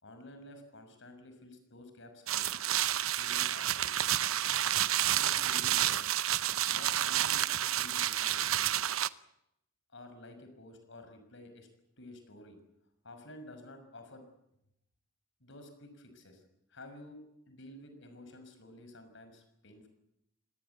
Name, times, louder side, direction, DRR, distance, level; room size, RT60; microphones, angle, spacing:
voice 1, 0.0-2.5 3.1-4.0 5.1-6.0 6.4-8.4 9.9-11.7 12.0-12.6 13.0-14.2 15.4-16.4 16.7-19.9, left 1 dB, 65° left, 7 dB, 6.2 m, -51 dB
sound 1, 2.3-9.1, right 12 dB, 85° right, 0.9 m, -30 dB
25.0 x 19.5 x 8.4 m, 0.81 s
head